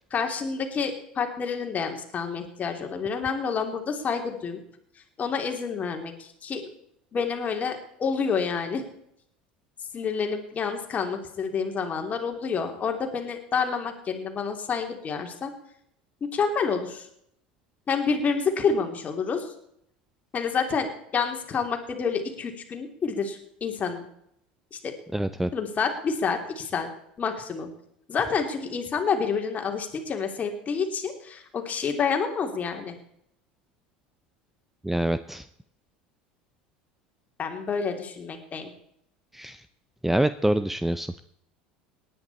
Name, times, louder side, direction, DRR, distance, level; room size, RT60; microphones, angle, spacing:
voice 1, 0.1-4.6 5.2-6.6 7.1-8.8 9.9-15.5 16.2-17.1 17.9-19.5 20.3-24.0 24.7-24.9 25.5-26.9 27.2-27.7 28.1-32.9 37.4-38.7, left 5 dB, 30° left, 4 dB, 3.2 m, -28 dB
voice 2, 25.1-25.5 34.8-35.4 39.4-39.6 40.0-41.1, right 1 dB, 5° right, 13 dB, 0.6 m, -25 dB
18.5 x 10.5 x 4.3 m, 0.71 s
hypercardioid pair, 80°, 5 cm